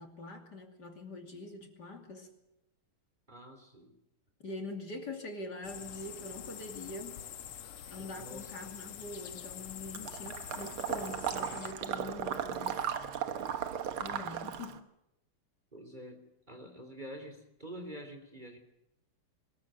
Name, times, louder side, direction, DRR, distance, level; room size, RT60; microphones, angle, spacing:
voice 1, 0.0-2.3 4.4-7.2 7.9-12.8 14.0-14.9, left 2 dB, 50° left, 3 dB, 3.3 m, -44 dB
voice 2, 3.3-3.9 7.9-8.5 14.1-14.5 15.7-18.6, equal, 20° right, 4 dB, 3.1 m, -47 dB
sound 1, 5.6-11.7, left 9 dB, 85° left, 1.9 m, -46 dB
Water / Liquid, 9.9-14.8, right 9 dB, 75° right, 2.1 m, -36 dB
23.5 x 21.0 x 7.7 m, 0.87 s
omnidirectional pair, 2.4 m